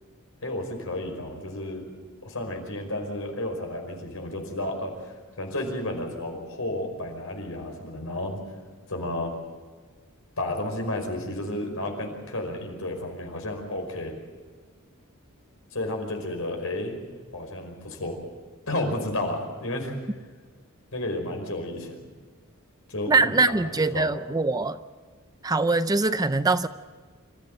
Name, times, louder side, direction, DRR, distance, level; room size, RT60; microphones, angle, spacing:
voice 1, 0.4-1.9 2.2-8.4 8.9-9.3 10.4-14.1 15.7-17.0 17.3-18.2 18.7-19.9 20.9-22.0 22.9-24.1, left 1 dB, 75° left, 2 dB, 5.3 m, -32 dB
voice 2, 23.1-24.8 25.4-26.7, right 3 dB, 15° right, 12 dB, 0.5 m, -23 dB
26.0 x 14.5 x 7.9 m, 1.5 s
head